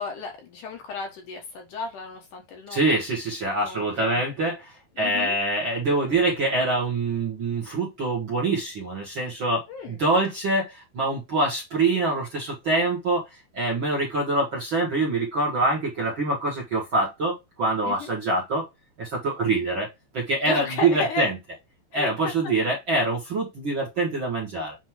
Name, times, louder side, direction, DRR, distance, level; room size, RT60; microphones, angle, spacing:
voice 1, 0.0-3.0 3.6-4.2 5.0-5.4 9.7-10.0 17.8-18.1 20.5-21.3 21.9-22.7, left 3 dB, 65° left, 2.5 m, -33 dB
voice 2, 2.7-13.2 13.5-18.6 19.0-19.9 20.1-21.4 21.9-24.8, right 2 dB, 45° right, 1.8 m, -25 dB
7.4 x 3.0 x 4.6 m
omnidirectional pair, 4.3 m